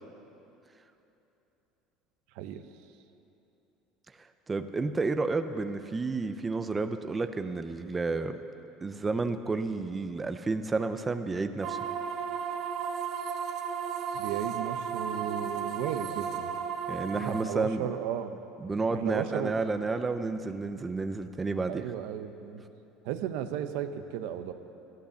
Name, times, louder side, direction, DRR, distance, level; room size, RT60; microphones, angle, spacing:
voice 1, 4.2-8.4 8.8-11.8 16.9-17.9 18.6-21.9, right 3 dB, 15° right, 8 dB, 0.5 m, -31 dB
sound 1, 11.6-17.4, right 7 dB, 55° right, 1.1 m, -34 dB
voice 2, 14.1-16.5 17.1-18.4 18.9-19.5 21.7-22.6 23.0-24.5, right 10 dB, 75° right, 9 dB, 0.8 m, -34 dB
13.0 x 12.5 x 7.0 m, 2.9 s
cardioid pair, 135°, 0 cm